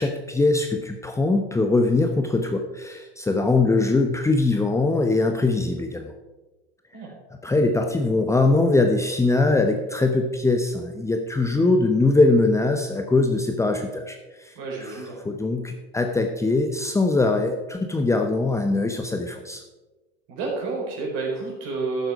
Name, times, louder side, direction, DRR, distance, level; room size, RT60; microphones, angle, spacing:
voice 1, 0.0-6.1 7.4-14.5 14.8-19.6, left 3 dB, 10° left, 4 dB, 0.9 m, -22 dB
voice 2, 14.5-15.2 20.3-22.1, right 3 dB, 50° right, -1 dB, 4.3 m, -29 dB
13.0 x 7.7 x 4.7 m, 1.1 s
figure-of-eight pair, 75°, 31 cm